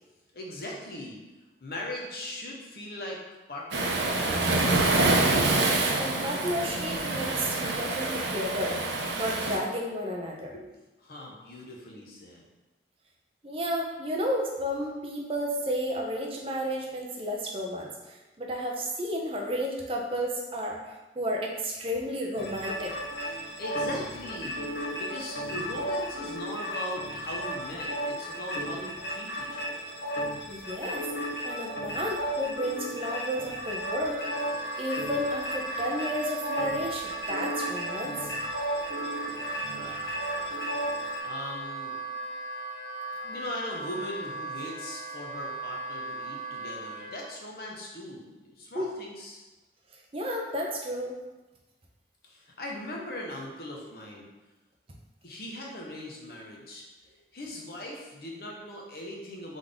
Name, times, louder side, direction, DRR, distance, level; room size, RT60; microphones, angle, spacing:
voice 1, 0.3-1.2 1.6-3.2 3.5-5.4 10.5-10.7 11.0-12.4 23.2-24.7 25.0-29.9 39.4-40.6 41.2-42.0 43.2-49.4 52.3-54.3 55.2-56.9 57.3-59.6, left 1 dB, 60° left, -2 dB, 0.9 m, -40 dB
Waves surf, 3.7-9.6, right 2 dB, 85° right, 0.6 m, -26 dB
voice 2, 6.0-8.8 9.1-10.5 13.4-22.9 30.5-31.0 31.4-34.2 34.8-38.3 48.7-48.9 50.1-51.1, equal, 30° right, 0 dB, 0.6 m, -32 dB
sound 1, 22.3-41.2, equal, 85° left, 1.0 m, -34 dB
Wind instrument woodwind instrument, 34.0-47.2, right 3 dB, 50° right, 1.3 m, -38 dB
3.9 x 3.5 x 3.5 m, 1.1 s
head